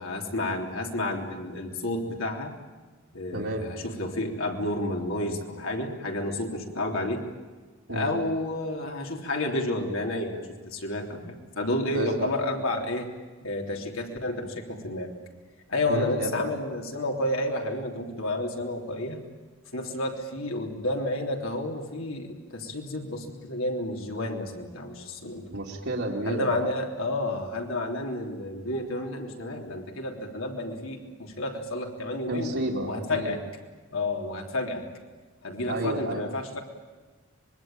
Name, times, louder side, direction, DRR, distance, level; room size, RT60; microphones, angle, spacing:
voice 1, 0.0-2.5 3.1-7.2 7.9-13.1 13.4-15.1 15.7-19.2 19.7-25.5 26.2-32.5 32.9-33.4 33.9-34.9 35.4-36.6, left 1 dB, 85° left, 1 dB, 3.4 m, -30 dB
voice 2, 3.3-3.7 7.9-8.2 11.9-12.3 15.9-16.4 25.5-26.7 32.3-33.4 35.7-36.2, right 1 dB, 75° right, -5 dB, 2.8 m, -31 dB
25.0 x 22.0 x 9.0 m, 1.3 s
head